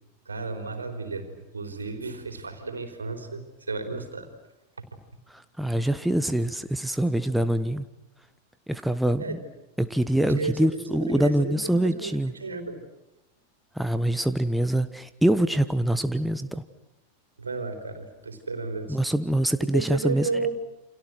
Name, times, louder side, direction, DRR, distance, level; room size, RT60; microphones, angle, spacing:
voice 1, 0.3-4.3 4.8-4.9 9.2-9.4 10.2-12.8 17.4-19.0 19.7-20.5, right 3 dB, 75° right, 8 dB, 4.1 m, -33 dB
voice 2, 5.3-7.9 8.7-9.4 9.8-12.3 13.7-16.6 18.9-20.3, right 1 dB, ahead, 10 dB, 1.2 m, -24 dB
29.5 x 27.0 x 6.3 m, 0.97 s
figure-of-eight pair, 90°, 0 cm